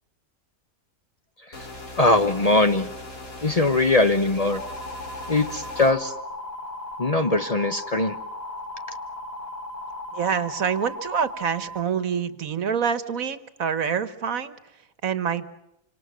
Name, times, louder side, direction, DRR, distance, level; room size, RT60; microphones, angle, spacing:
sound 1, 1.5-5.9, left 2 dB, 85° left, 4.1 m, -40 dB
voice 1, 2.0-2.9 3.4-4.6 5.3-6.1 7.0-8.1, left 2 dB, 30° left, 8 dB, 0.9 m, -21 dB
sound 2, 4.5-11.8, left 1 dB, 45° left, 1.7 m, -36 dB
voice 2, 10.1-14.5 15.0-15.5, right 7 dB, 75° right, 13 dB, 1.6 m, -26 dB
26.5 x 25.5 x 6.2 m, 0.87 s
omnidirectional pair, 1.5 m